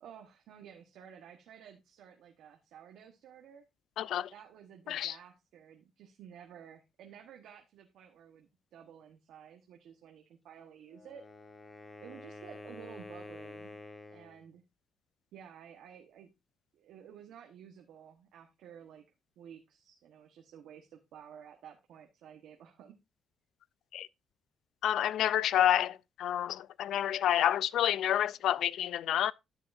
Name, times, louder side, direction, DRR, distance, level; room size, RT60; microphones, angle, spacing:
voice 1, 0.0-3.6 4.3-11.2 12.0-13.7 14.1-14.6 15.3-16.3 16.7-19.0 19.4-22.9, right 8 dB, 80° right, 1.2 m, -53 dB
voice 2, 4.0-4.3 4.9-5.2 23.9-24.1 24.8-29.3, left 11 dB, 75° left, 0.4 m, -29 dB
Wind instrument woodwind instrument, 10.8-14.4, left 2 dB, 25° left, 1.4 m, -48 dB
12.0 x 7.0 x 2.6 m
cardioid pair, 90°, 0 cm